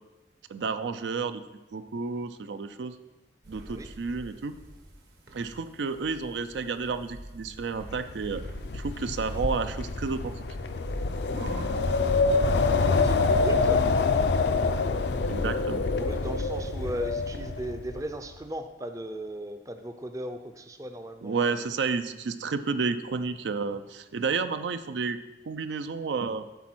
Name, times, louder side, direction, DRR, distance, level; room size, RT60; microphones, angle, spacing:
voice 1, 0.5-1.4 1.7-2.9 3.5-4.5 5.3-8.4 8.7-10.4 15.3-15.8 21.2-25.2 25.5-26.5, right 4 dB, 85° right, 10 dB, 0.5 m, -31 dB
sound 1, 3.4-11.7, right 1 dB, 65° right, 1.1 m, -44 dB
voice 2, 3.5-3.9 12.9-13.9 15.9-21.6, right 1 dB, 20° right, 7 dB, 0.4 m, -37 dB
Wind, 7.9-18.0, left 3 dB, 75° left, 0.5 m, -26 dB
8.2 x 4.2 x 6.1 m, 1.1 s
head